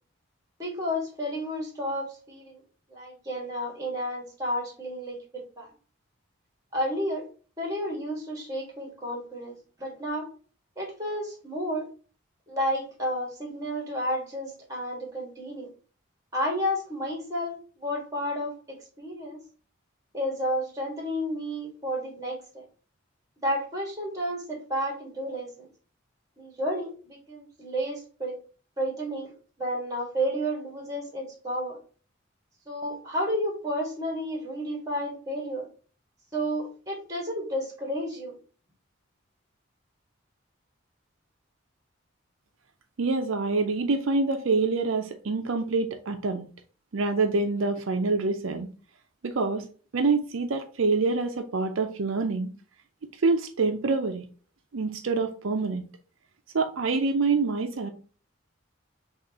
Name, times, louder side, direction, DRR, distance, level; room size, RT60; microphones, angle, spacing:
voice 1, 0.6-2.6 2.9-5.7 6.7-7.3 7.6-10.3 10.8-11.9 12.5-15.7 16.3-19.4 20.1-22.6 23.4-25.7 26.4-28.4 28.8-29.3 29.6-31.8 32.7-35.7 36.3-38.3, equal, 15° right, 1.6 m, -31 dB
voice 2, 43.0-46.5 46.9-48.7 49.2-49.7 49.9-52.5 53.2-54.3 54.7-55.9 56.5-57.9, right 3 dB, 75° right, 0.5 m, -26 dB
5.9 x 2.4 x 2.9 m
head